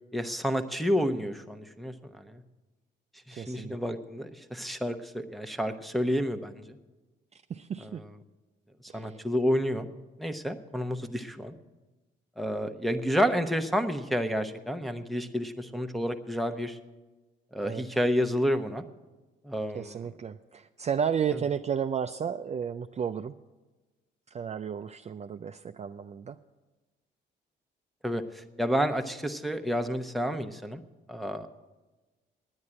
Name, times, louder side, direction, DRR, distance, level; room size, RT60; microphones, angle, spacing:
voice 1, 0.1-2.4 3.3-6.8 7.8-8.1 8.9-9.9 10.2-11.6 12.4-16.8 17.5-18.8 19.4-20.0 28.0-30.8 31.1-31.5, equal, ahead, 5 dB, 0.9 m, -30 dB
voice 2, 3.3-3.8 7.5-8.0 8.9-9.2 17.6-17.8 19.7-23.3 24.3-26.4, right 7 dB, 35° right, 8 dB, 0.4 m, -33 dB
9.6 x 9.6 x 8.8 m, 1.2 s
cardioid pair, 90°, 20 cm